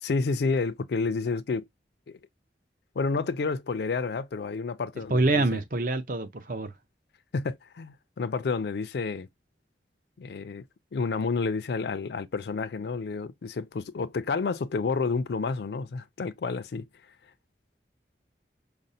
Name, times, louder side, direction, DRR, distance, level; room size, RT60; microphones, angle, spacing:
voice 1, 0.0-1.6 2.1-2.2 3.0-5.6 7.3-9.3 10.2-10.6 10.9-16.8, left 4 dB, 70° left, 0.4 m, -30 dB
voice 2, 5.1-6.7, right 2 dB, 50° right, 0.6 m, -26 dB
5.1 x 2.1 x 2.7 m
head